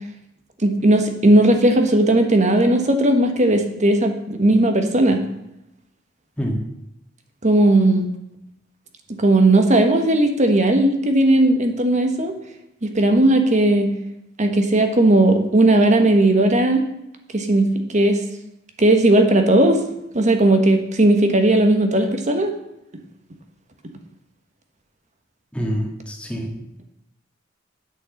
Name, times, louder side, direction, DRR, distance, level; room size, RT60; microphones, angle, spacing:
voice 1, 0.6-5.2 7.4-8.1 9.2-12.3 12.8-13.9 14.4-16.8 17.3-17.7 17.9-18.2 18.8-19.8 20.1-22.5, right 1 dB, 35° right, 6 dB, 1.3 m, -16 dB
voice 2, 25.5-26.5, equal, 5° left, 0 dB, 2.0 m, -26 dB
8.6 x 6.5 x 7.8 m, 0.85 s
head